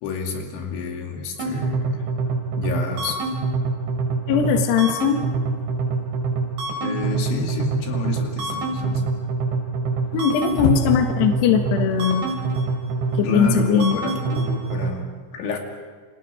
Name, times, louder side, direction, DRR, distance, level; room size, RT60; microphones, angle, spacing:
voice 1, 0.0-2.1 2.6-3.2 6.8-9.2 13.2-15.1 15.3-15.6, left 3 dB, 90° left, 2 dB, 5.0 m, -29 dB
sound 1, 1.4-14.9, right 3 dB, 75° right, 6.1 m, -25 dB
voice 2, 4.3-5.2 10.1-12.3 13.2-14.0, left 7 dB, 70° left, 4 dB, 3.6 m, -19 dB
29.5 x 26.5 x 5.1 m, 1.5 s
omnidirectional pair, 5.3 m